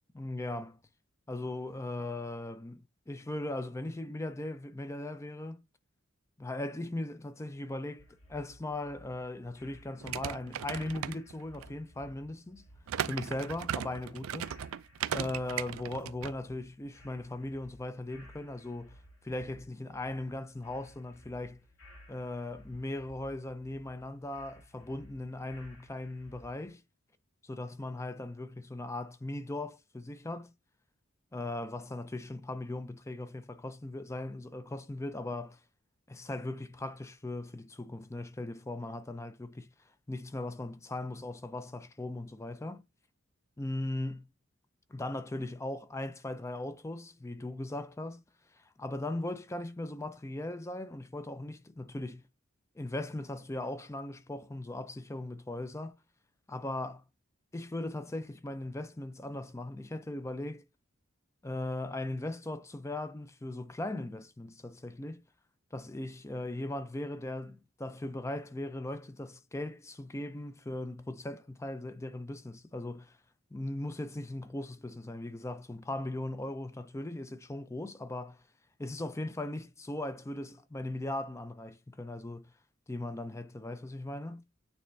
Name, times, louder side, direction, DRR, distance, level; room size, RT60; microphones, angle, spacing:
voice 1, 0.1-0.8 1.3-5.6 6.4-12.7 13.1-14.5 15.1-19.0 19.2-21.6 22.1-26.8 27.4-30.5 31.3-35.6 36.1-39.7 40.1-42.8 43.6-44.3 44.9-48.2 48.8-52.2 52.8-56.0 56.5-57.0 57.5-60.7 61.4-65.2 65.7-73.2 73.5-78.4 78.8-82.5 82.9-84.4, left 2 dB, 15° left, 0.4 m, -38 dB
sound 1, 8.0-26.7, equal, 75° left, 2.4 m, -57 dB
sound 2, 10.0-11.7 12.9-16.3, right 9 dB, 85° right, 0.4 m, -37 dB
9.0 x 3.3 x 3.2 m
head